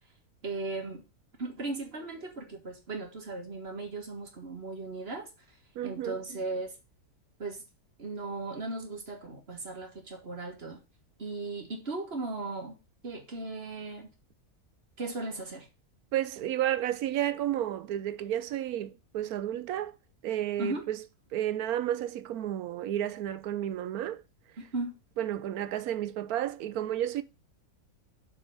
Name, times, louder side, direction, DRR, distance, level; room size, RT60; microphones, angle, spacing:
voice 1, 0.4-1.1 1.4-5.3 5.8-6.8 7.4-7.6 8.0-10.8 11.2-12.7 13.0-14.1 15.0-15.7 20.6-20.8 24.6-24.9, right 3 dB, 40° right, 1.9 m, -37 dB
voice 2, 5.8-6.2 16.1-19.9 20.2-21.0 21.3-24.2 25.2-27.2, right 12 dB, 75° right, 1.1 m, -31 dB
7.1 x 4.5 x 5.2 m
omnidirectional pair, 1.6 m